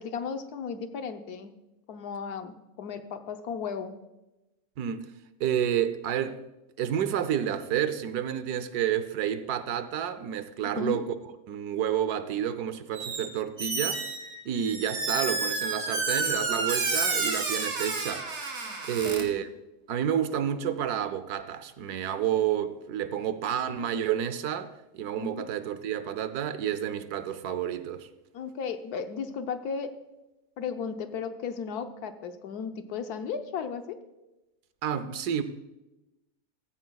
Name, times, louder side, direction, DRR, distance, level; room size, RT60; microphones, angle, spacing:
voice 1, 0.0-1.5 1.9-3.9 10.7-11.0 19.0-19.3 25.2-25.5 28.3-29.9 30.6-34.0, left 6 dB, 80° left, 1.3 m, -35 dB
voice 2, 5.4-6.4 6.8-11.1 11.5-14.0 14.4-18.3 18.9-19.5 19.9-28.1 34.8-35.4, right 9 dB, 80° right, 1.3 m, -30 dB
Squeak, 12.9-13.3 13.6-19.2, right 3 dB, 65° right, 2.1 m, -30 dB
15.0 x 14.5 x 2.3 m
omnidirectional pair, 1.6 m